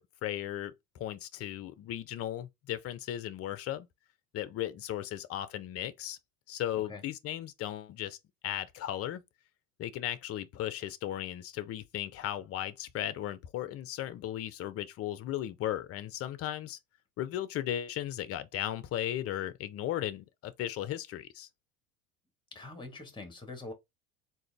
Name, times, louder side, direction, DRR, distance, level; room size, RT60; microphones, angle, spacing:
voice 1, 0.0-3.9 4.3-6.2 6.5-8.2 8.4-9.2 9.8-16.8 17.2-21.5, left 12 dB, 35° left, 0.5 m, -36 dB
voice 2, 22.5-23.7, left 3 dB, 10° left, 1.4 m, -44 dB
3.8 x 2.7 x 3.3 m
hypercardioid pair, 80°, 45 cm